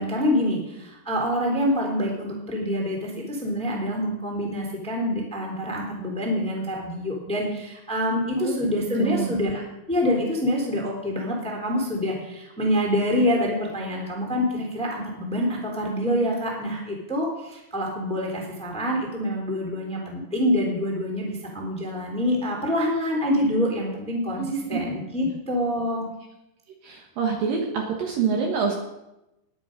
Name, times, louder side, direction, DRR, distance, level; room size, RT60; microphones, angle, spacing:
voice 1, 0.0-9.6 9.9-24.4 24.7-26.0, left 1 dB, ahead, -2 dB, 2.3 m, -26 dB
voice 2, 9.0-9.3 24.4-24.8 25.3-25.4 26.8-28.8, right 6 dB, 60° right, 1 dB, 2.8 m, -26 dB
20.0 x 8.1 x 5.2 m, 0.91 s
omnidirectional pair, 5.0 m